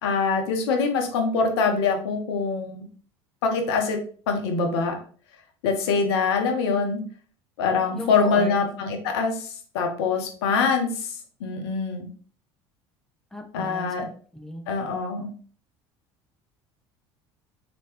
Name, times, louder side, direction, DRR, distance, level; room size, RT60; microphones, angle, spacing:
voice 1, 0.0-2.8 3.4-4.0 4.3-5.0 5.6-7.0 7.6-12.1 13.5-14.0 14.7-15.3, left 4 dB, 75° left, 4 dB, 0.9 m, -24 dB
voice 2, 7.9-8.5 13.3-14.6, left 1 dB, 5° left, 3 dB, 0.9 m, -36 dB
4.6 x 3.0 x 2.9 m, 0.42 s
hypercardioid pair, 70°, 14 cm